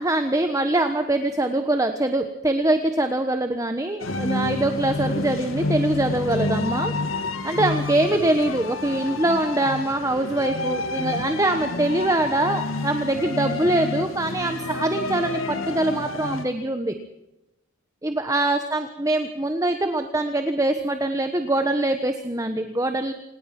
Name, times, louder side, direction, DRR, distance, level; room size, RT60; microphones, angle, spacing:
voice 1, 0.0-17.0 18.0-23.1, right 1 dB, 15° right, 7 dB, 1.1 m, -23 dB
sound 1, 4.0-16.4, left 2 dB, 80° left, 2.2 m, -29 dB
27.0 x 19.0 x 6.0 m, 0.93 s
head